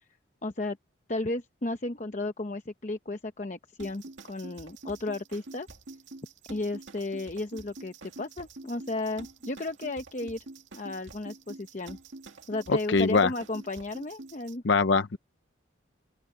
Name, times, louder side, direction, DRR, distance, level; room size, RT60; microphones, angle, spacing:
voice 1, 0.4-0.8 1.1-5.7 6.5-10.4 10.7-12.0 12.5-14.6, left 2 dB, 40° left, 0.8 m, -34 dB
sound 1, 3.8-14.6, right 2 dB, 80° right, 2.0 m, -47 dB
voice 2, 12.7-13.3 14.6-15.2, left 4 dB, 70° left, 0.7 m, -23 dB
open air
head